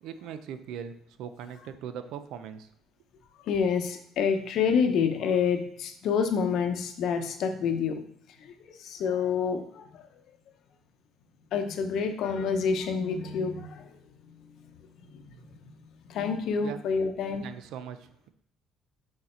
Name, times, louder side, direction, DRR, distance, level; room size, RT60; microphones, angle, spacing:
voice 1, 0.0-2.7 16.6-16.8 17.3-18.3, right 8 dB, 70° right, 10 dB, 0.6 m, -40 dB
voice 2, 3.5-8.0 8.4-10.1 11.5-13.9 15.1-15.2 16.1-17.5, left 6 dB, 60° left, 6 dB, 0.8 m, -28 dB
6.6 x 4.2 x 4.3 m, 0.66 s
cardioid pair, 150°, 0 cm